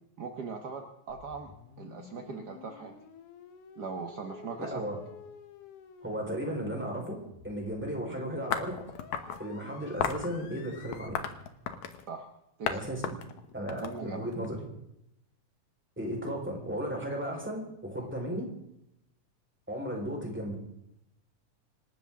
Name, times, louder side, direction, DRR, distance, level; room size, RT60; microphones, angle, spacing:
voice 1, 0.2-1.5 1.8-2.9 3.8-4.8 12.1-12.3 12.6-12.8 13.8-14.3 18.0-18.1, right 5 dB, 55° right, 4 dB, 1.2 m, -40 dB
sound 1, 1.1-11.1, left 7 dB, 90° left, 2.8 m, -51 dB
voice 2, 4.6-5.0 6.0-8.8 9.4-11.3 12.7-13.2 13.5-14.7 16.0-18.5 19.7-20.5, equal, 5° right, -1 dB, 4.2 m, -35 dB
sound 2, 8.5-9.4 10.0-10.3 10.9-12.0 12.7-12.8 13.0-14.5, left 8 dB, 70° left, 2.5 m, -33 dB
26.5 x 13.0 x 3.7 m, 0.82 s
omnidirectional pair, 3.5 m